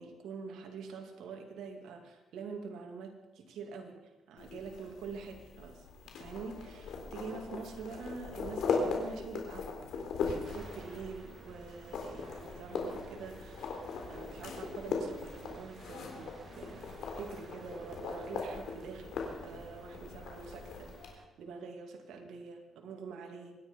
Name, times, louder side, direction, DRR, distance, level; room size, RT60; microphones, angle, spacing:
voice 1, 0.0-23.5, right 5 dB, 80° right, 2 dB, 2.5 m, -46 dB
sound 1, 4.4-21.1, left 4 dB, 75° left, 3.8 m, -39 dB
sound 2, 10.4-21.3, right 3 dB, 40° right, 2.0 m, -54 dB
25.0 x 10.5 x 5.4 m, 1.1 s
cardioid pair, 90°, 0 cm